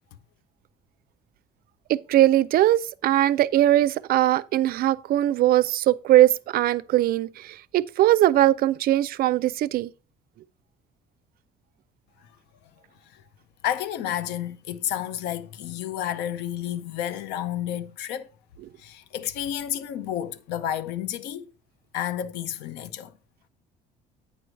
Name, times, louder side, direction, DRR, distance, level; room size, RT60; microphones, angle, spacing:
voice 1, 1.9-9.9, right 14 dB, 60° right, 0.4 m, -20 dB
voice 2, 13.6-18.3 18.8-21.5 21.9-23.1, left 11 dB, 90° left, 0.5 m, -31 dB
9.1 x 3.1 x 6.2 m
cardioid pair, 110°, 17 cm